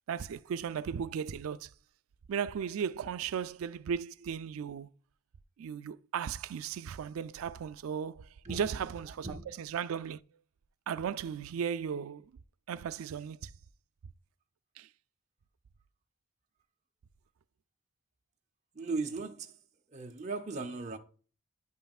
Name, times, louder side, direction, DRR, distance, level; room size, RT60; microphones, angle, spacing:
voice 1, 0.1-1.7 2.3-4.9 5.6-9.3 9.6-10.2 10.9-12.3 12.7-13.5 14.8-14.9, right 7 dB, 80° right, 0.3 m, -36 dB
voice 2, 18.7-19.6 19.9-21.0, right 3 dB, 35° right, 0.8 m, -37 dB
9.7 x 5.6 x 2.4 m
head